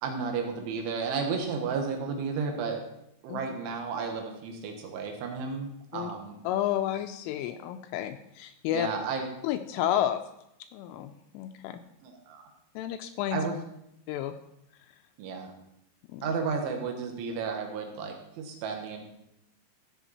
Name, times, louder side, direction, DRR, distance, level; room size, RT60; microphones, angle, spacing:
voice 1, 0.0-2.8 3.2-6.4 8.7-9.3 12.0-12.5 13.3-13.6 15.2-15.5 16.2-19.0, right 5 dB, 70° right, 3 dB, 3.5 m, -33 dB
voice 2, 6.5-8.9 9.4-10.2 10.7-11.8 12.8-13.5 14.1-14.3 16.1-16.3, left 12 dB, 85° left, 8 dB, 2.9 m, -31 dB
14.5 x 7.7 x 4.1 m, 0.80 s
omnidirectional pair, 6.0 m